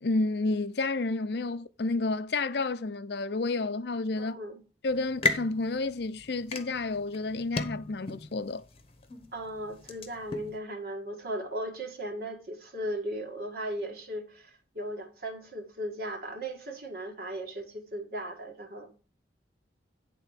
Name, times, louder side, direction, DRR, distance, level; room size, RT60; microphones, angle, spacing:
voice 1, 0.0-4.4 4.8-8.6, left 3 dB, 60° left, 0.6 m, -30 dB
voice 2, 4.2-4.6 9.3-18.9, right 1 dB, 55° right, 1.8 m, -37 dB
sound 1, 4.9-10.6, left 2 dB, 30° left, 1.0 m, -36 dB
10.0 x 3.8 x 6.4 m
head